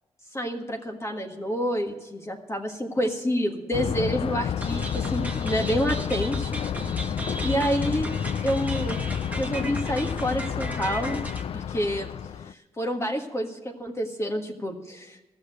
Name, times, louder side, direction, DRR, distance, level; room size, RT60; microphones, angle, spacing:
voice 1, 0.3-6.6 7.4-8.1 8.4-9.0 9.4-11.2 11.5-12.1 12.4-15.2, equal, 25° left, 2 dB, 1.6 m, -28 dB
Thunder, 3.7-12.5, left 9 dB, 60° left, 0.4 m, -30 dB
sound 1, 4.6-11.4, right 1 dB, 15° right, 1.5 m, -36 dB
13.5 x 6.6 x 9.2 m, 1.1 s
cardioid pair, 60°, 11 cm